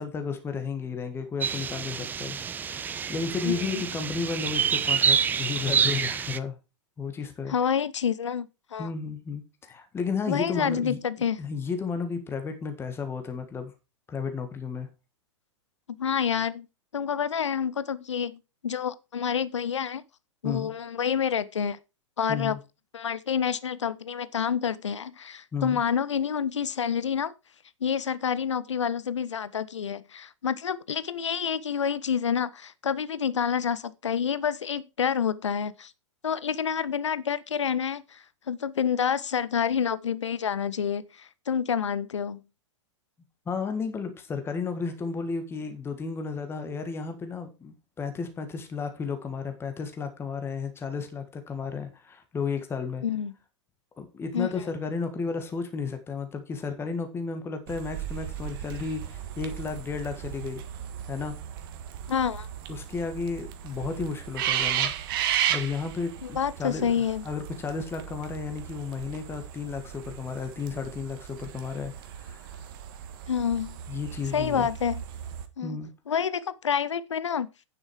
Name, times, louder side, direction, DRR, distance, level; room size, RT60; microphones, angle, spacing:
voice 1, 0.0-6.5 7.0-7.5 8.8-11.0 11.4-13.7 14.1-14.9 20.4-20.7 22.3-22.6 25.5-25.8 43.4-53.0 54.0-60.6 61.1-61.3 62.7-64.9 65.5-72.6 73.9-74.7 75.6-75.9, left 5 dB, 15° left, 1.6 m, -33 dB
sound 1, 1.4-6.4, right 7 dB, 10° right, 0.4 m, -27 dB
voice 2, 3.4-3.8 7.5-8.9 10.3-11.4 16.0-16.7 16.9-20.0 20.4-21.8 22.2-22.6 22.9-27.3 27.8-35.9 36.2-42.4 53.0-53.3 54.3-54.5 62.1-62.5 66.2-67.2 73.3-73.8 74.3-75.0 75.6-75.8 76.1-77.5, left 7 dB, 70° left, 0.7 m, -28 dB
sound 2, 57.7-75.5, right 10 dB, 45° right, 1.4 m, -35 dB
9.4 x 7.2 x 4.7 m
figure-of-eight pair, 105°, 16 cm